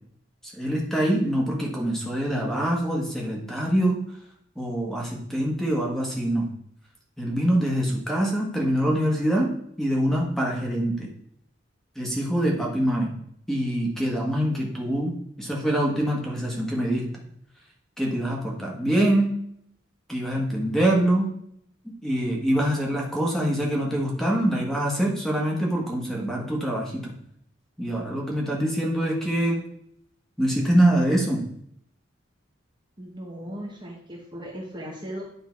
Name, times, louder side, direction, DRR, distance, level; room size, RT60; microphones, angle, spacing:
voice 1, 0.6-4.0 4.5-6.5 7.2-9.5 9.8-11.1 11.9-13.2 13.5-17.1 18.0-19.3 20.1-21.3 22.0-27.1 27.8-29.6 30.4-31.5, right 1 dB, ahead, -2 dB, 1.5 m, -24 dB
voice 2, 33.0-35.2, equal, 25° right, -2 dB, 1.0 m, -37 dB
9.5 x 3.9 x 4.6 m, 0.70 s
head